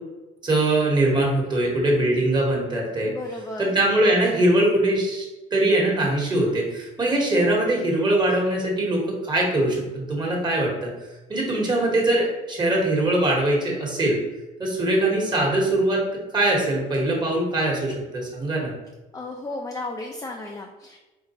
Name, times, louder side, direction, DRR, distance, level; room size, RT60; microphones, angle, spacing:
voice 1, 0.4-3.1 3.6-5.2 5.5-10.9 11.3-14.2 14.6-16.0 16.3-18.7, right 1 dB, 25° right, -2 dB, 1.4 m, -22 dB
voice 2, 3.1-3.7 19.1-21.0, left 2 dB, 20° left, 1 dB, 0.6 m, -34 dB
4.4 x 3.6 x 3.0 m, 1.1 s
cardioid pair, 110°, 17 cm